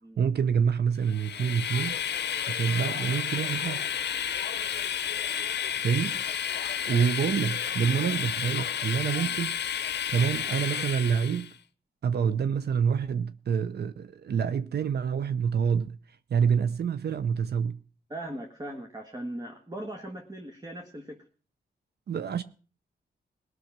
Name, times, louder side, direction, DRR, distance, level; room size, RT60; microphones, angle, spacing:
voice 1, 0.2-2.0 2.5-3.9 5.8-6.2 6.9-9.6 10.1-11.5 12.0-17.8 22.1-22.4, right 7 dB, 65° right, 0.6 m, -27 dB
Train, 1.0-11.5, left 9 dB, 70° left, 0.6 m, -31 dB
voice 2, 18.1-21.2, right 1 dB, 20° right, 1.6 m, -39 dB
18.5 x 6.4 x 5.9 m
cardioid pair, 70°, 18 cm